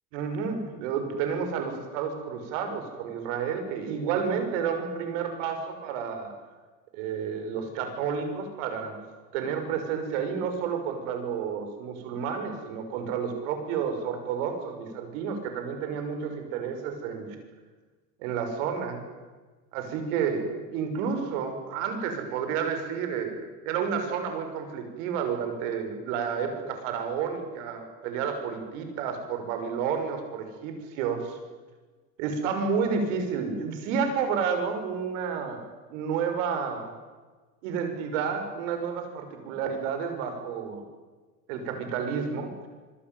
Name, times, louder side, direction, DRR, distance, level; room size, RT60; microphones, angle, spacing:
voice 1, 0.1-6.3 6.9-9.0 9.3-17.4 18.2-19.0 19.7-31.4 32.2-36.9 37.6-40.8 41.5-42.5, right 6 dB, 50° right, 6 dB, 6.2 m, -30 dB
26.0 x 20.5 x 9.4 m, 1.3 s
supercardioid pair, 170°, 50 cm